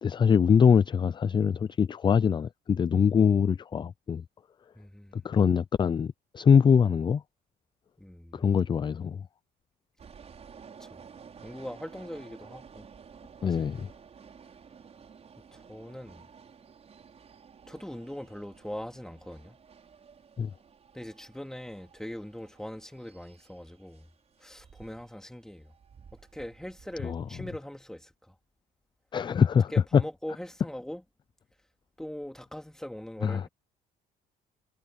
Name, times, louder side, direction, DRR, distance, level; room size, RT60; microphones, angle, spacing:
voice 1, 0.0-4.2 5.2-7.2 8.3-9.2 13.4-13.9 20.4-20.5 27.0-27.2 29.1-30.0 33.2-33.4, left 7 dB, 25° left, 0.4 m, -23 dB
voice 2, 4.7-5.2 8.0-8.5 10.8-11.0 11.4-12.9 13.4-13.7 15.5-16.3 17.7-19.6 20.9-24.1 24.4-25.7 26.1-28.3 29.7-31.0 32.0-33.5, left 1 dB, 5° left, 3.2 m, -41 dB
sound 1, 10.0-27.6, right 6 dB, 40° right, 5.8 m, -53 dB
cardioid pair, 110°, 17 cm